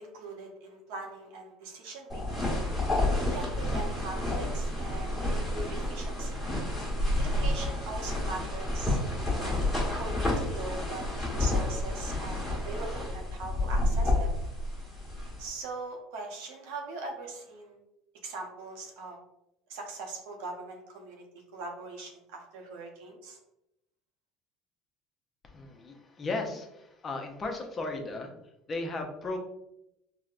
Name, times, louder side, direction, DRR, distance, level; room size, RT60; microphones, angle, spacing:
voice 1, 0.0-2.6 3.3-6.4 7.2-9.0 9.4-11.0 11.3-14.3 15.4-17.8 18.2-19.2 19.7-21.2 21.5-23.4, right 3 dB, 80° right, 1 dB, 0.8 m, -41 dB
sound 1, 2.1-15.5, left 1 dB, 5° left, 1.2 m, -30 dB
voice 2, 25.4-28.3 28.7-29.4, left 2 dB, 25° left, 3 dB, 0.5 m, -35 dB
4.5 x 2.1 x 2.4 m, 0.84 s
supercardioid pair, 125°, 0 cm